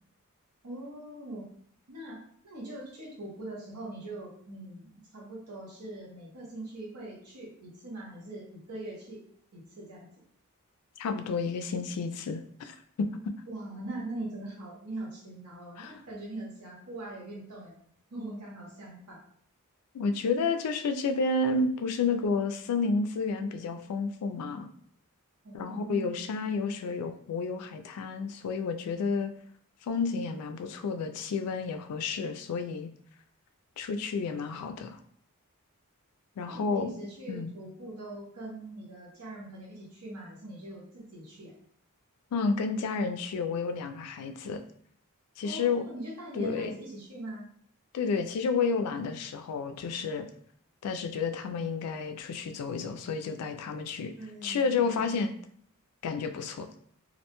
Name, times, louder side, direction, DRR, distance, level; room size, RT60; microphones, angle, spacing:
voice 1, 0.6-1.5 1.9-2.2 2.4-9.2 9.5-10.1 13.5-17.8 18.1-19.2 25.4-26.5 36.4-41.5 45.4-47.5 54.1-55.0, right 2 dB, 80° right, -3 dB, 1.0 m, -42 dB
voice 2, 11.0-13.1 15.8-15.9 19.9-24.7 25.5-29.3 29.8-32.9 33.8-35.0 36.4-36.9 37.3-37.5 42.3-44.6 45.4-45.9 46.3-46.7 47.9-50.2 50.8-54.1 54.4-55.3 56.0-56.8, left 4 dB, 80° left, 7 dB, 0.3 m, -31 dB
2.5 x 2.1 x 2.9 m, 0.63 s
head